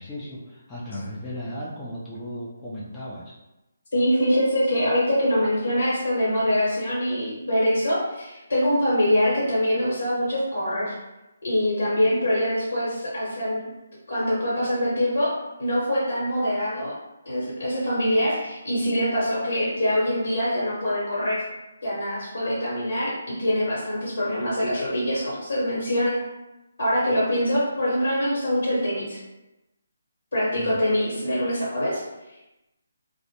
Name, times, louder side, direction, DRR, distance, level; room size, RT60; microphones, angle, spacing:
voice 1, 0.0-3.3 30.6-30.7, equal, 15° left, -8 dB, 0.4 m, -36 dB
voice 2, 3.9-10.9 11.4-13.7 14.1-15.3 15.6-16.9 17.2-21.4 21.8-26.2 26.8-29.2 30.3-32.0, equal, 70° left, -7 dB, 1.0 m, -24 dB
2.1 x 2.1 x 2.8 m, 0.99 s
figure-of-eight pair, 155°, 0 cm